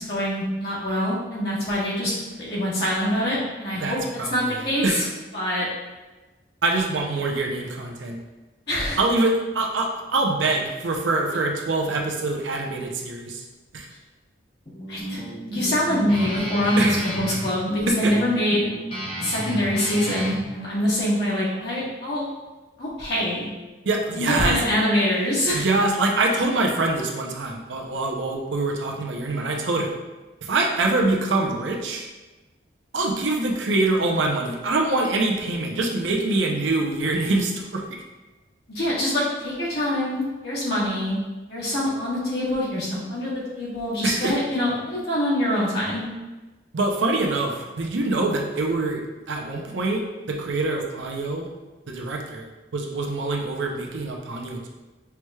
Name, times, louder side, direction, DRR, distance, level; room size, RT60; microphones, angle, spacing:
voice 1, 0.0-4.0 4.3-5.0 5.3-5.7 8.7-9.0 14.9-15.2 15.5-18.6 19.2-22.3 22.8-23.5 24.1-25.7 38.7-41.1 41.5-46.0, left 1 dB, 60° left, -7 dB, 1.4 m, -24 dB
voice 2, 3.8-4.6 4.8-5.1 6.6-8.2 9.0-13.5 13.7-13.9 16.8-17.0 17.9-18.1 23.9-24.6 25.5-29.9 30.4-32.1 32.9-38.0 44.0-44.4 46.7-49.0 49.3-50.0 50.3-51.5 51.9-52.5 52.7-54.7, right 2 dB, 85° right, 1 dB, 0.6 m, -24 dB
Guitar, 14.7-20.4, equal, 30° left, 0.6 m, -32 dB
5.8 x 3.1 x 2.3 m, 1.2 s
head